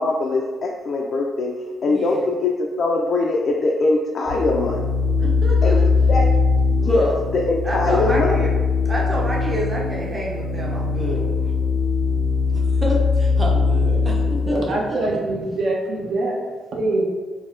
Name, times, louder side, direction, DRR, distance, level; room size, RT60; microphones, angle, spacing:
voice 1, 0.0-1.5 1.8-4.8 5.6-5.7 6.1-6.3 6.8-8.4, left 3 dB, 55° left, -1 dB, 0.3 m, -21 dB
voice 2, 1.8-2.3 5.2-5.9 6.8-7.2 7.6-8.5 8.9-11.3 12.5-15.2, equal, 25° right, -4 dB, 0.7 m, -28 dB
sound 1, 4.3-14.5, left 4 dB, 70° right, 1.1 m, -20 dB
voice 3, 14.5-16.4 16.7-17.0, right 2 dB, 55° right, -2 dB, 0.7 m, -23 dB
3.9 x 2.1 x 2.5 m, 1.4 s
cardioid pair, 90°, 0 cm